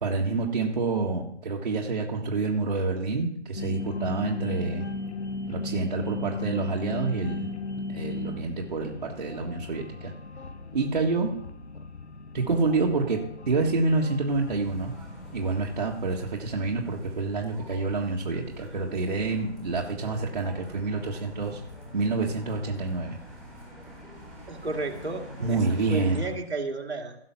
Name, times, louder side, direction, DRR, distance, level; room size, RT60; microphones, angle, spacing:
voice 1, 0.0-4.8 5.5-7.5 7.9-10.1 10.7-11.3 12.3-13.2 13.5-14.9 15.3-21.6 21.9-23.2 25.4-26.2, right 3 dB, 45° right, -2 dB, 1.7 m, -28 dB
sound 1, 3.5-15.8, left 3 dB, 70° left, 1.2 m, -37 dB
sound 2, 14.3-26.3, equal, ahead, 1.9 m, -45 dB
voice 2, 24.5-25.6 25.9-27.2, right 3 dB, 65° right, 2 dB, 2.4 m, -32 dB
16.5 x 6.2 x 5.8 m, 0.72 s
figure-of-eight pair, 150°, 35 cm